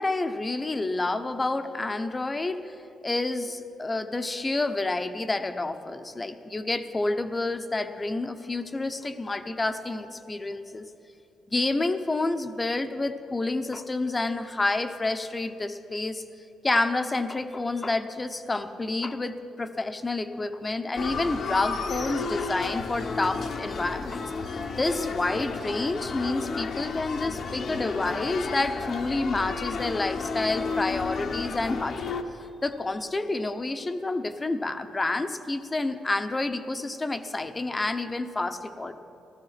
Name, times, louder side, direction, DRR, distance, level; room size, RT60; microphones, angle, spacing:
voice 1, 0.0-2.8 3.0-10.8 11.5-16.2 16.6-32.1 32.6-38.9, left 2 dB, 20° left, 9 dB, 0.9 m, -29 dB
sound 1, 21.0-32.2, left 4 dB, 55° left, 1.1 m, -32 dB
15.5 x 13.0 x 5.8 m, 2.7 s
cardioid pair, 90°, 0 cm